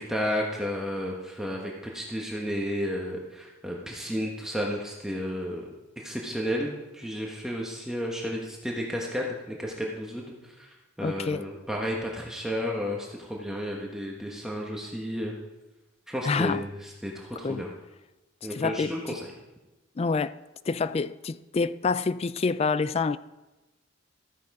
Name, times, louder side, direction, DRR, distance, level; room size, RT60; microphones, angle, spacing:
voice 1, 0.1-5.7 6.0-10.3 11.0-15.3 16.1-17.7 18.4-19.2, equal, 5° right, 1.2 m, -32 dB
voice 2, 11.0-11.5 16.2-16.6 17.4-17.6 18.5-19.2 20.0-20.3 20.7-23.2, left 4 dB, 30° left, 0.3 m, -27 dB
14.0 x 9.7 x 4.8 m
head